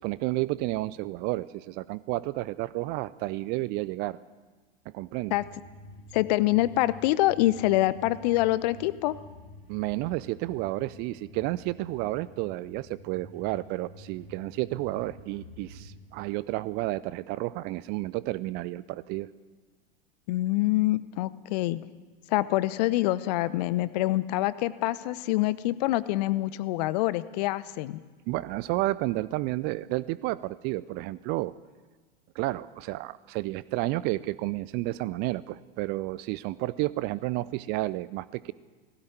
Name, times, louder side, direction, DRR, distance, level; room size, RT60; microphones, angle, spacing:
voice 1, 0.0-4.2 4.9-5.4 9.7-19.3 28.3-31.5 32.3-38.5, right 18 dB, 35° right, 19 dB, 0.6 m, -31 dB
sound 1, 5.2-16.0, left 1 dB, 85° right, 5.3 m, -49 dB
voice 2, 6.1-9.2 20.3-21.8 22.3-28.0, left 17 dB, 45° left, 17 dB, 0.8 m, -25 dB
17.0 x 17.0 x 9.2 m, 1.3 s
figure-of-eight pair, 90°, 29 cm